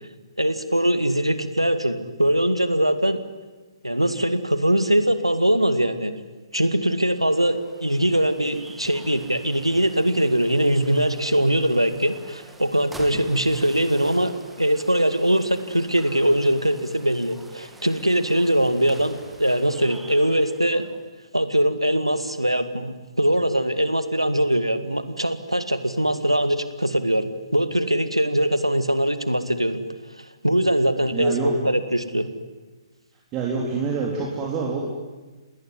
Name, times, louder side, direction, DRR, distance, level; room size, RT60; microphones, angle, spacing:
voice 1, 0.4-3.2 3.8-6.1 6.5-20.8 21.3-29.8 30.4-31.3 31.6-32.3, right 1 dB, 90° right, 10 dB, 2.2 m, -22 dB
sound 1, 7.0-21.1, right 2 dB, 5° right, 2.3 m, -46 dB
voice 2, 31.1-31.6 33.3-34.8, right 4 dB, 20° right, -2 dB, 3.8 m, -26 dB
28.5 x 19.5 x 9.8 m, 1.2 s
figure-of-eight pair, 130°, 3 cm